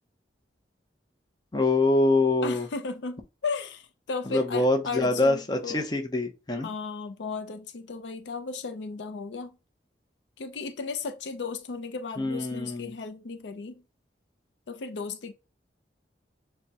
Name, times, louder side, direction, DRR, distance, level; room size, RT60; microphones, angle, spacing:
voice 1, 1.5-2.7 4.3-6.7 12.2-12.9, left 2 dB, 20° left, 0.6 m, -25 dB
voice 2, 2.4-5.9 6.5-9.6 10.4-13.8 14.7-15.3, left 4 dB, 75° left, 0.5 m, -35 dB
6.4 x 2.1 x 2.8 m
head